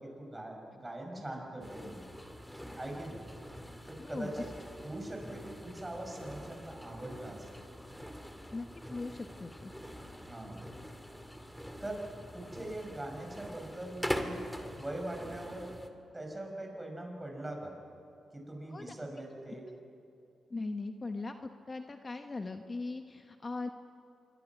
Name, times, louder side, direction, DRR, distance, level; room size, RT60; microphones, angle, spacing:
voice 1, 0.0-2.0 2.7-3.2 3.9-4.5 4.8-7.6 10.2-10.6 11.8-14.4 14.8-15.8 16.1-17.8 18.3-19.7, right 1 dB, 15° right, 1 dB, 6.5 m, -42 dB
sound 1, 1.6-15.9, equal, 5° left, 2.1 m, -44 dB
voice 2, 4.0-4.4 8.5-9.7 18.7-18.9 20.5-23.7, left 3 dB, 30° left, 6 dB, 1.1 m, -40 dB
26.0 x 23.0 x 6.2 m, 2.6 s
cardioid pair, 80°, 0 cm